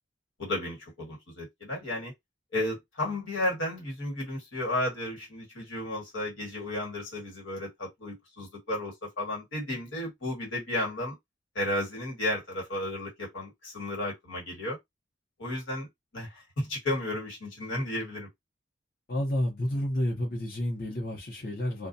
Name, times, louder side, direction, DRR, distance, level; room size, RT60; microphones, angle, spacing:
voice 1, 0.4-2.1 2.5-11.1 11.5-14.8 15.4-15.9 16.1-18.3, left 1 dB, 90° left, 1.6 m, -33 dB
voice 2, 19.1-21.9, left 1 dB, 50° left, 0.9 m, -30 dB
2.4 x 2.3 x 2.7 m
head